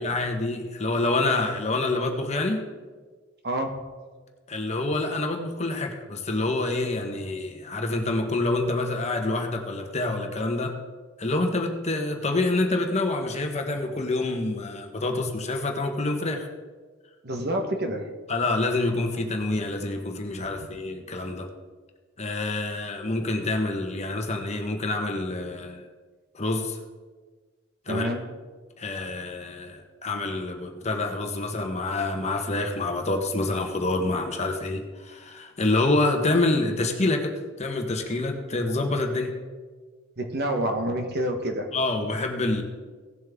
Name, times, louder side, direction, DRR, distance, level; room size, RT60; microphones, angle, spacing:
voice 1, 0.0-2.7 4.5-10.8 11.2-16.5 18.3-21.5 22.2-25.8 26.3-26.8 27.9-28.1 28.8-39.4 41.7-42.6, left 2 dB, 35° left, 3 dB, 1.2 m, -27 dB
voice 2, 3.4-3.9 17.2-18.1 20.4-20.7 27.9-28.2 40.2-41.7, right 1 dB, 55° right, 4 dB, 1.3 m, -28 dB
17.5 x 7.3 x 3.6 m, 1.4 s
head